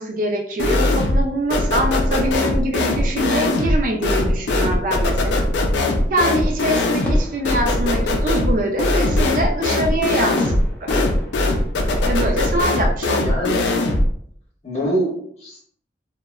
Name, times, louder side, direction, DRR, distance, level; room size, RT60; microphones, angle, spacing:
voice 1, 0.0-5.4 6.1-10.9 12.1-13.3, right 1 dB, 50° right, 3 dB, 0.4 m, -24 dB
sound 1, 0.6-1.3 1.5-14.1, left 1 dB, 85° left, 0.4 m, -20 dB
sound 2, 7.0-8.6 10.4-12.4, equal, 10° left, 0.5 m, -33 dB
voice 2, 13.1-13.7 14.6-15.6, equal, 40° left, -3 dB, 0.8 m, -25 dB
2.7 x 2.1 x 2.3 m, 0.64 s
head